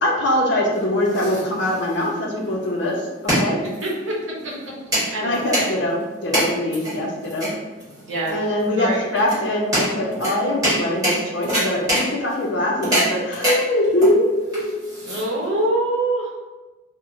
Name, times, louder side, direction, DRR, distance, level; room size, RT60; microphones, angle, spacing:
voice 1, 0.0-3.6 5.2-7.6 8.3-14.7, left 1 dB, 65° left, -1 dB, 0.5 m, -22 dB
sound 1, 0.7-15.6, equal, 20° right, 1.3 m, -26 dB
voice 2, 3.6-4.1 5.1-5.7 8.0-8.4 8.7-9.0 15.0-16.3, right 1 dB, 80° right, -4 dB, 0.7 m, -24 dB
2.9 x 2.1 x 2.5 m, 1.2 s
head